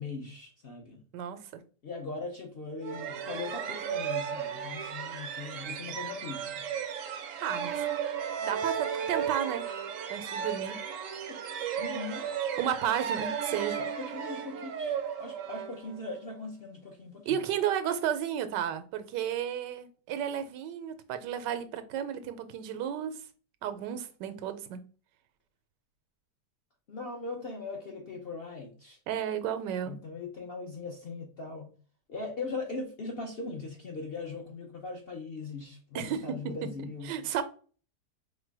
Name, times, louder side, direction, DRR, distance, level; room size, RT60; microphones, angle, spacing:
voice 1, 0.0-1.0 1.8-6.7 11.3-11.4 11.8-12.3 13.8-17.4 26.9-29.0 29.8-31.7 32.1-37.2, left 3 dB, 55° left, 0.7 m, -40 dB
sound 1, 2.8-16.3, right 8 dB, 65° right, 0.8 m, -35 dB
voice 2, 7.4-7.8 8.4-9.7 10.1-10.8 12.6-13.8 17.3-23.2 23.6-24.8 29.1-30.0 35.9-36.2 37.0-37.4, right 9 dB, 85° right, 1.3 m, -32 dB
4.4 x 2.2 x 4.6 m
omnidirectional pair, 1.8 m